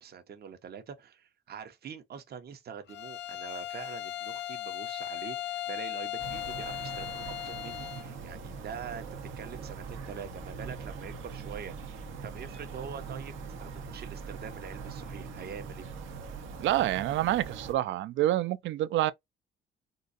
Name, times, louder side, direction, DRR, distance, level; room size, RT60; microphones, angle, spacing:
voice 1, 0.0-9.1 9.4-15.9, right 7 dB, 55° right, 0.9 m, -44 dB
Bowed string instrument, 2.9-8.1, left 13 dB, 60° left, 0.5 m, -37 dB
sound 1, 6.2-17.7, right 6 dB, 85° right, 1.0 m, -43 dB
sound 2, 8.0-16.6, equal, 5° left, 0.3 m, -49 dB
voice 2, 16.6-19.1, right 14 dB, 70° right, 0.4 m, -27 dB
3.8 x 2.6 x 2.6 m
cardioid pair, 90°, 20 cm